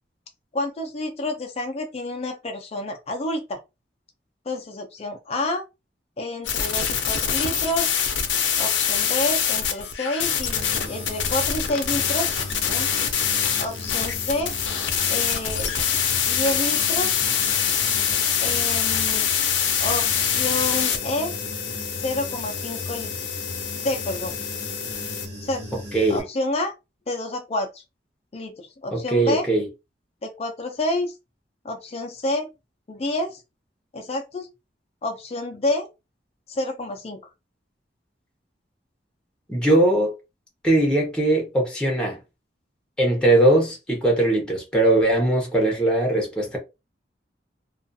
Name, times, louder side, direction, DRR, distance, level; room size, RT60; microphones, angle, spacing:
voice 1, 0.5-3.6 4.5-5.6 6.2-7.9 8.6-12.3 12.6-12.9 13.6-14.5 15.1-15.7 16.3-17.2 18.4-19.3 19.8-21.3 22.0-23.1 23.8-24.3 25.4-25.7 26.1-26.7 27.1-27.8 28.3-29.5 30.2-31.1 31.6-32.5 32.9-33.4 33.9-34.5 35.0-35.9 36.5-37.2, left 2 dB, 35° left, 0.4 m, -29 dB
sound 1, 6.4-25.3, left 8 dB, 85° left, 0.5 m, -25 dB
Human voice / Buzz, 10.5-26.2, left 1 dB, 70° right, 1.2 m, -38 dB
voice 2, 28.9-29.7 39.5-40.1 40.6-42.2 43.0-46.6, right 1 dB, 5° left, 0.8 m, -20 dB
2.4 x 2.4 x 2.6 m
head